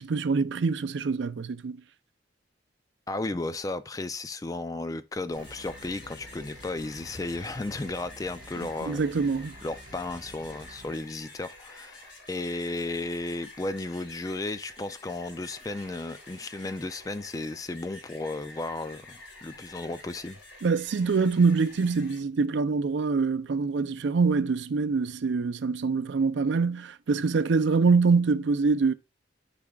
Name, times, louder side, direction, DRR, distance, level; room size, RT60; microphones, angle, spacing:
voice 1, 0.0-1.8 8.8-9.5 20.6-28.9, right 4 dB, 75° right, 0.4 m, -25 dB
voice 2, 3.1-9.0 9.6-20.4, left 2 dB, 20° left, 0.3 m, -34 dB
sound 1, 5.1-22.2, left 2 dB, 80° left, 3.5 m, -49 dB
sound 2, 5.4-10.9, right 1 dB, 25° right, 0.9 m, -49 dB
11.5 x 4.9 x 2.3 m
head